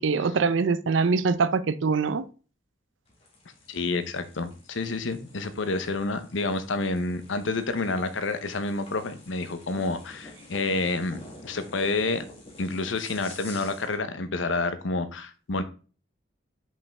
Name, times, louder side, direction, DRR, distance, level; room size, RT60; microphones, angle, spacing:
voice 1, 0.0-2.3, right 4 dB, 75° right, 0.5 m, -23 dB
sound 1, 3.1-14.0, left 2 dB, 30° left, 1.8 m, -49 dB
voice 2, 3.7-12.2 12.6-15.6, left 3 dB, 80° left, 0.8 m, -29 dB
5.4 x 5.3 x 3.4 m
head